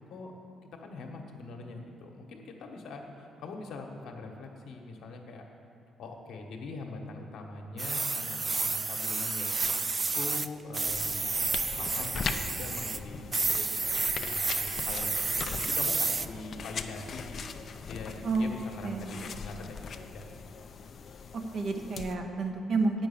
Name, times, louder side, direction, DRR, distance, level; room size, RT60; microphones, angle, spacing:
voice 1, 0.8-5.4 6.0-9.6 10.0-11.5 11.8-13.8 14.2-20.5, left 3 dB, 75° left, 2 dB, 1.2 m, -43 dB
sound 1, 7.8-10.5 10.7-13.0 13.3-16.3, right 3 dB, 30° right, 0.4 m, -30 dB
sound 2, 10.9-22.2, left 5 dB, 55° left, 0.5 m, -40 dB
voice 2, 21.5-23.1, right 3 dB, 60° right, 4 dB, 1.0 m, -29 dB
8.7 x 6.0 x 7.2 m, 2.6 s
cardioid pair, 90°, 0 cm